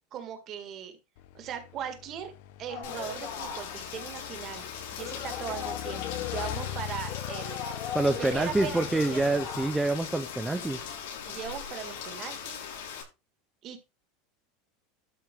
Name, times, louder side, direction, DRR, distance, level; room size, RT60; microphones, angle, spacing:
voice 1, 0.1-1.0 1.3-2.3 2.6-7.7 8.2-9.4 11.3-12.7 13.6-13.8, right 8 dB, 25° right, 1.9 m, -39 dB
Motorcycle / Engine, 1.2-10.9, left 13 dB, 55° left, 0.9 m, -42 dB
sound 1, 2.7-12.2, left 8 dB, 35° left, 2.1 m, -41 dB
Rain, 2.8-13.0, left 7 dB, 75° left, 6.2 m, -40 dB
voice 2, 7.9-10.9, right 2 dB, 5° right, 0.6 m, -27 dB
13.0 x 5.2 x 5.3 m
supercardioid pair, 180°, 0 cm